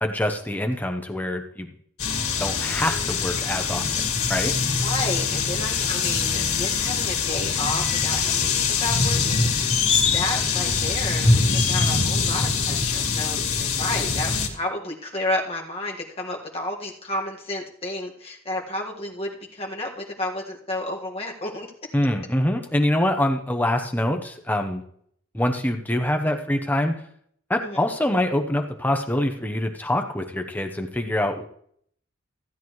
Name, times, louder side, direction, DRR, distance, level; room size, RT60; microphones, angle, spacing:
voice 1, 0.0-1.7 2.4-4.0 4.3-4.5 21.9-24.8 25.3-27.0 27.5-31.4, left 1 dB, 10° left, 5 dB, 0.8 m, -25 dB
sound 1, 2.0-14.5, left 5 dB, 80° left, 2.1 m, -23 dB
voice 2, 4.8-9.8 10.1-21.7 27.6-27.8, left 1 dB, 25° left, -1 dB, 1.7 m, -31 dB
15.5 x 9.0 x 3.1 m, 0.64 s
head